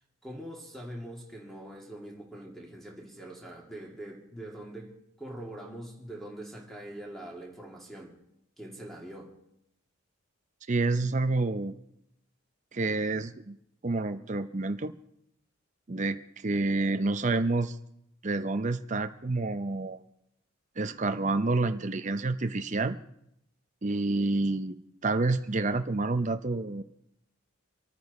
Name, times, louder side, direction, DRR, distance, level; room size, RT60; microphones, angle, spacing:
voice 1, 0.2-8.2 8.6-9.3, right 1 dB, ahead, 2.4 m, -43 dB
voice 2, 10.7-11.7 12.7-13.6 13.8-14.9 15.9-17.8 18.2-20.0 20.8-23.0 23.8-24.8 25.0-26.8, right 3 dB, 35° right, 0.6 m, -28 dB
28.0 x 9.3 x 4.2 m
head